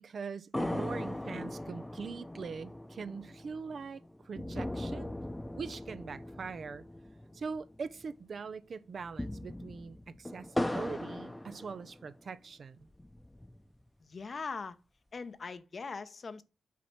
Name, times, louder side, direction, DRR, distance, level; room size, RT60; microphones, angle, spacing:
voice 1, 0.0-5.1 5.6-6.8 7.3-12.9, right 5 dB, 60° right, 0.5 m, -42 dB
sound 1, 0.5-8.1 8.4-8.5 8.9-12.3 12.8-13.8, left 1 dB, 10° left, 0.7 m, -39 dB
voice 2, 14.0-14.8 15.1-16.4, left 4 dB, 50° left, 0.7 m, -41 dB
6.0 x 4.1 x 5.9 m
cardioid pair, 60°, 0 cm